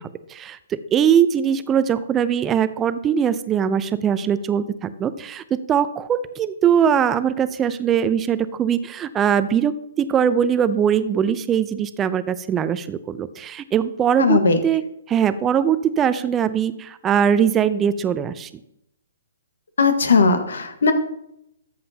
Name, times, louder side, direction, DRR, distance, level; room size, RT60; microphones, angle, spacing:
voice 1, 0.3-18.5, right 8 dB, 20° right, 14 dB, 0.6 m, -21 dB
voice 2, 14.2-14.6 19.8-20.9, left 4 dB, 75° left, 7 dB, 1.5 m, -17 dB
13.5 x 7.7 x 2.9 m, 0.77 s
hypercardioid pair, 135°, 0 cm